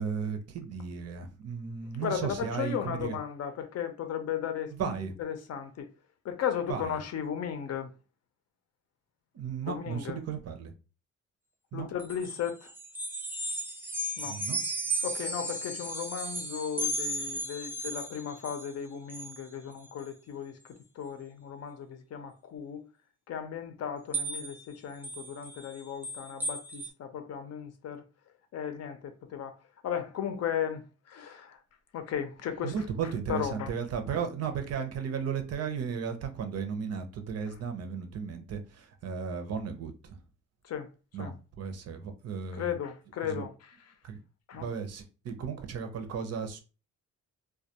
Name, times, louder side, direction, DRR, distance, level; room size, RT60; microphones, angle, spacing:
voice 1, 0.0-3.2 4.7-5.1 6.7-7.0 9.3-10.7 11.7-11.9 14.2-14.6 32.6-40.2 41.1-42.7 43.3-43.5 44.0-44.2 44.5-46.6, right 6 dB, 55° right, 0.6 m, -35 dB
voice 2, 2.0-4.9 5.2-5.9 6.2-7.9 9.6-10.2 11.7-12.7 14.2-14.4 15.0-22.9 23.3-28.0 28.5-29.6 29.8-31.6 31.9-32.7 33.3-33.7 40.6-40.9 41.2-41.3 42.5-43.7 44.5-44.7, left 8 dB, 55° left, 0.6 m, -35 dB
sound 1, 12.0-18.7 19.1-19.5 19.8-20.1 20.7-20.8 24.1-24.6 25.0-26.9, right 1 dB, 5° right, 0.3 m, -35 dB
2.2 x 2.2 x 2.8 m
cardioid pair, 90°, 30 cm